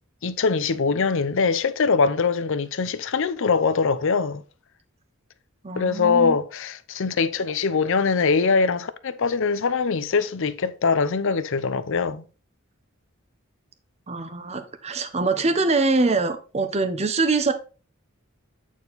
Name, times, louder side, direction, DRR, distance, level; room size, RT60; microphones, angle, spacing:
voice 1, 0.2-4.4 5.8-12.2, left 5 dB, 65° left, 0.6 m, -22 dB
voice 2, 5.6-6.4 14.1-17.5, right 3 dB, 30° right, 0.8 m, -23 dB
8.6 x 4.6 x 4.0 m
head